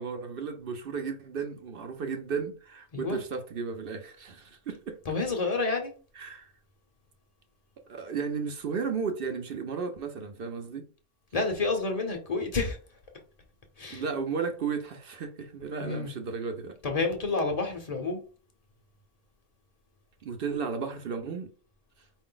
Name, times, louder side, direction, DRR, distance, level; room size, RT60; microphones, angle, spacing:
voice 1, 0.0-5.0 6.2-6.5 7.9-10.8 13.9-16.8 20.2-21.5, right 5 dB, 55° right, 0.6 m, -34 dB
voice 2, 5.0-5.9 11.3-13.0 13.8-14.0 15.8-16.1 16.8-18.3, left 3 dB, 35° left, 0.7 m, -29 dB
4.7 x 2.5 x 3.8 m
omnidirectional pair, 1.5 m